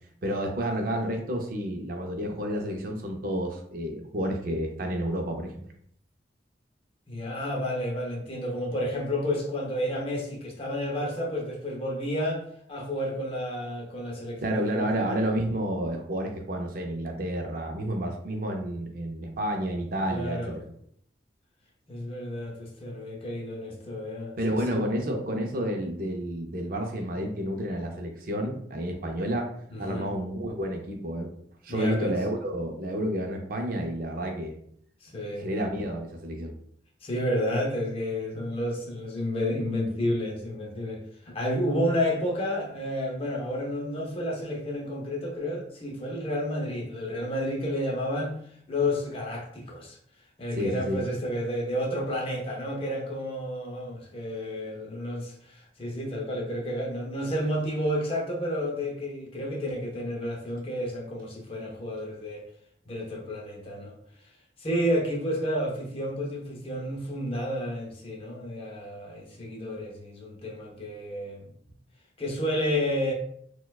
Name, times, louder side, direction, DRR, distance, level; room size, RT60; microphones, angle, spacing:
voice 1, 0.2-5.6 14.4-20.6 24.4-29.5 29.8-31.3 31.6-34.6 35.4-36.6 50.5-51.1, equal, 50° right, 3 dB, 0.5 m, -30 dB
voice 2, 7.1-12.4 12.7-15.2 20.1-20.6 21.9-24.8 29.7-30.1 31.7-32.1 35.0-35.5 37.0-48.4 48.7-50.0 50.4-62.4 62.9-63.9 64.6-71.5 72.2-73.1, equal, 30° left, -1 dB, 0.6 m, -31 dB
4.2 x 2.2 x 2.3 m, 0.66 s
head